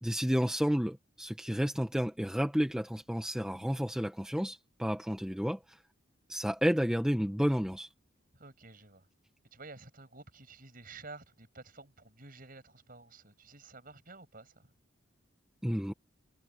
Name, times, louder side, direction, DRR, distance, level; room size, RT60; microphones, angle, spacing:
voice 1, 0.0-5.8 6.3-7.9 15.6-15.9, equal, 5° right, 1.3 m, -31 dB
voice 2, 8.3-9.1 9.5-14.7, right 3 dB, 45° right, 6.8 m, -51 dB
head